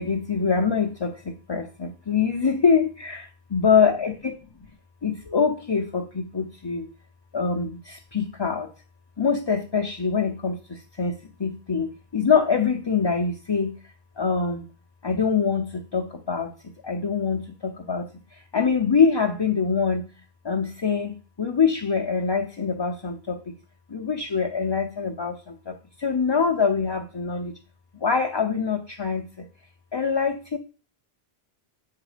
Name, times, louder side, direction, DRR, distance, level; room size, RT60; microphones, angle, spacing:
voice 1, 0.0-4.3 5.0-6.9 7.3-8.7 9.2-13.8 14.2-14.7 15.0-16.5 16.8-20.1 20.4-23.6 23.9-27.6 28.0-29.5 29.9-30.6, left 5 dB, 30° left, 2 dB, 0.5 m, -24 dB
7.3 x 3.8 x 4.9 m, 0.33 s
omnidirectional pair, 1.0 m